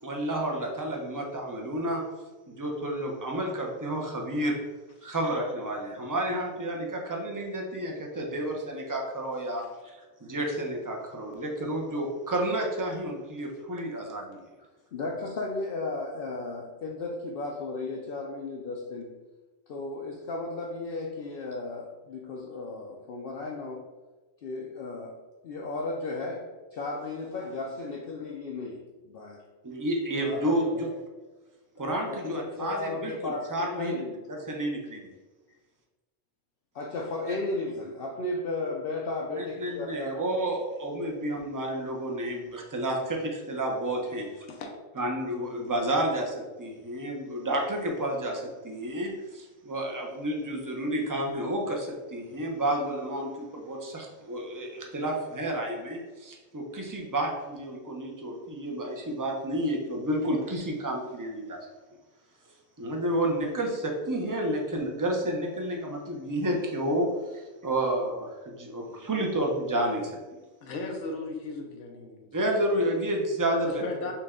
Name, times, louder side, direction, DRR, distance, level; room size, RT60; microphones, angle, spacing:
voice 1, 0.0-2.0 2.5-4.6 5.0-14.4 29.6-30.9 31.8-33.9 34.5-35.1 37.3-37.4 39.3-44.3 45.0-61.6 62.8-70.2 72.3-73.8, right 1 dB, 25° right, 0 dB, 0.4 m, -30 dB
voice 2, 14.9-19.1 19.7-23.8 24.4-25.2 25.4-29.4 30.2-30.9 31.8-34.1 36.7-40.2, left 2 dB, 60° left, -1 dB, 0.7 m, -35 dB
voice 3, 70.6-72.3 73.7-74.1, left 3 dB, 85° left, 1 dB, 1.0 m, -36 dB
5.8 x 2.2 x 3.6 m, 1.2 s
omnidirectional pair, 1.2 m